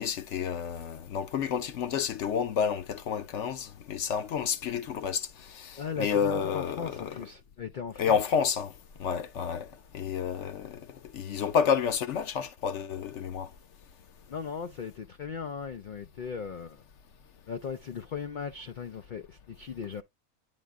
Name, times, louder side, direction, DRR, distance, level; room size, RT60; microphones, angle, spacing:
voice 1, 0.0-7.1 8.0-8.7 9.0-9.7 9.9-10.8 11.1-13.5, left 7 dB, 65° left, 0.9 m, -30 dB
voice 2, 5.8-8.2 14.3-16.8 17.5-20.0, left 6 dB, 85° left, 0.4 m, -38 dB
9.3 x 3.8 x 3.5 m
omnidirectional pair, 1.5 m